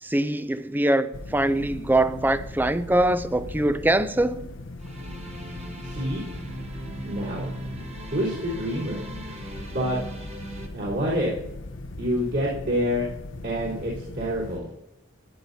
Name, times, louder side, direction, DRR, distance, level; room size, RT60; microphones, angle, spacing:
voice 1, 0.0-4.5, right 1 dB, 10° right, 0.4 m, -23 dB
sound 1, 1.1-14.6, left 2 dB, 60° left, 0.7 m, -39 dB
sound 2, 4.8-10.7, right 2 dB, 30° right, 1.2 m, -39 dB
voice 2, 5.8-6.2 7.0-7.5 8.1-9.0 9.7-10.0 10.7-11.3 12.0-13.1 13.4-14.7, equal, 50° right, 3.7 m, -27 dB
14.5 x 10.5 x 2.7 m
head